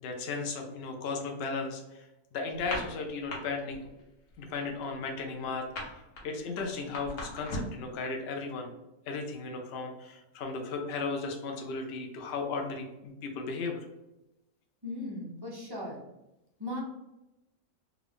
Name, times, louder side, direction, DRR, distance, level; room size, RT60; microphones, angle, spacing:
voice 1, 0.0-2.1 2.3-3.8 4.4-5.7 6.2-8.7 9.1-12.8 13.2-13.8, left 4 dB, 70° left, 3 dB, 0.6 m, -35 dB
sound 1, 2.6-3.4 3.7-4.0 4.3-7.8, left 1 dB, 85° left, 1.5 m, -38 dB
voice 2, 14.8-16.0 16.6-16.8, left 1 dB, 35° right, -4 dB, 0.4 m, -37 dB
3.7 x 2.3 x 3.4 m, 0.94 s
omnidirectional pair, 1.5 m